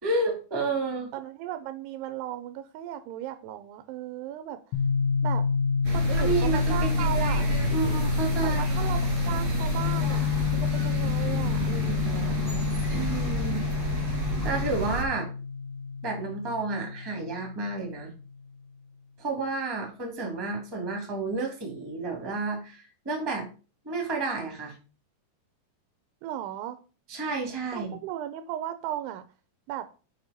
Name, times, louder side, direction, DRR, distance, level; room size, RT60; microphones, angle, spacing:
voice 1, 0.0-1.1 6.2-8.7 12.9-13.7 14.1-15.3 16.0-18.1 19.2-23.5 23.8-24.7 27.1-27.9, right 3 dB, 10° right, 1 dB, 1.4 m, -31 dB
voice 2, 1.1-4.6 5.2-5.5 5.9-7.5 8.4-12.7 26.2-26.8 27.7-29.2 29.7-29.9, right 12 dB, 80° right, 11 dB, 2.5 m, -36 dB
sound 1, 4.7-18.3, left 6 dB, 75° left, 3.1 m, -28 dB
sound 2, 5.8-15.0, right 4 dB, 25° right, 1.8 m, -30 dB
7.2 x 5.0 x 5.2 m, 0.35 s
omnidirectional pair, 5.0 m